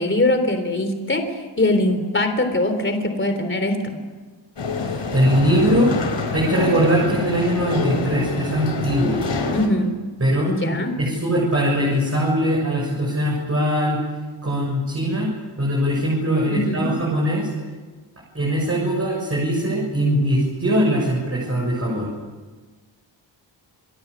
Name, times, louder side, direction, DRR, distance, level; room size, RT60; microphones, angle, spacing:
voice 1, 0.0-4.0 9.5-9.9 10.5-10.9 16.5-16.9, left 1 dB, 25° left, 7 dB, 3.6 m, -22 dB
sound 1, 4.6-9.7, left 4 dB, 65° left, 4.1 m, -26 dB
voice 2, 5.1-5.9 6.3-9.2 10.2-10.5 11.0-14.0 14.4-15.3 15.6-17.5 18.3-22.1, equal, 30° right, -4 dB, 6.9 m, -21 dB
28.5 x 21.0 x 8.4 m, 1.4 s
wide cardioid pair, 165°, 46 cm